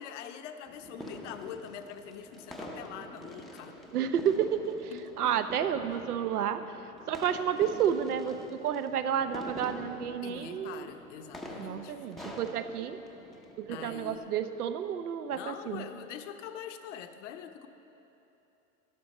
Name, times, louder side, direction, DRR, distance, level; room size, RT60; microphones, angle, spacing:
voice 1, 0.0-3.8 4.9-5.0 10.2-12.0 13.7-14.3 15.3-17.7, left 9 dB, 55° left, 8 dB, 0.8 m, -44 dB
sound 1, 0.7-14.2, equal, ahead, 0.5 m, -46 dB
voice 2, 3.9-6.6 7.1-10.9 11.6-13.0 13.6-15.8, right 8 dB, 90° right, 10 dB, 0.8 m, -31 dB
12.0 x 12.0 x 4.2 m, 3.0 s
hypercardioid pair, 125°, 44 cm